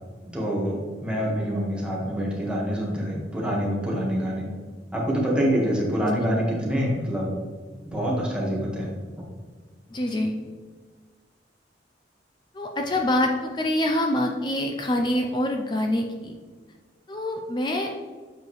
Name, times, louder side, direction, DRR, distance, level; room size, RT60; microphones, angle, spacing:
voice 1, 0.2-4.5 4.9-7.3 7.8-8.9, equal, 5° right, -4 dB, 1.5 m, -26 dB
voice 2, 9.9-10.3 12.5-16.4 17.1-17.9, left 1 dB, 25° left, 3 dB, 0.4 m, -25 dB
7.7 x 4.8 x 3.2 m, 1.5 s
head